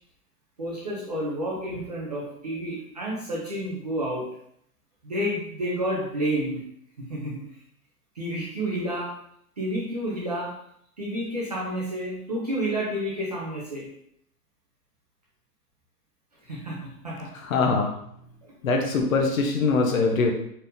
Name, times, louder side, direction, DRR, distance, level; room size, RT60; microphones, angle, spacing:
voice 1, 0.6-4.2 5.0-6.6 7.0-7.4 8.2-9.1 9.6-10.5 11.0-13.9 16.4-17.3 18.4-18.5, right 1 dB, 25° right, -5 dB, 0.6 m, -30 dB
voice 2, 17.4-17.9 18.6-20.3, left 4 dB, 55° left, 2 dB, 0.9 m, -22 dB
4.4 x 3.5 x 2.6 m, 0.72 s
hypercardioid pair, 170°, 48 cm